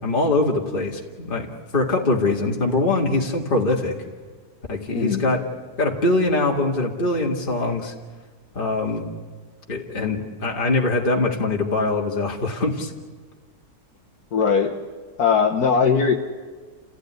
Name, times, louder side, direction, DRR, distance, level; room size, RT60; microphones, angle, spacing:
voice 1, 0.0-4.0 4.7-5.4 5.8-7.9 8.5-9.1 9.7-12.9, left 2 dB, 30° left, -1 dB, 2.3 m, -23 dB
voice 2, 4.9-5.3 14.3-14.8 15.2-16.1, left 6 dB, 70° left, 0 dB, 1.9 m, -20 dB
29.5 x 16.0 x 9.9 m, 1.5 s
omnidirectional pair, 1.7 m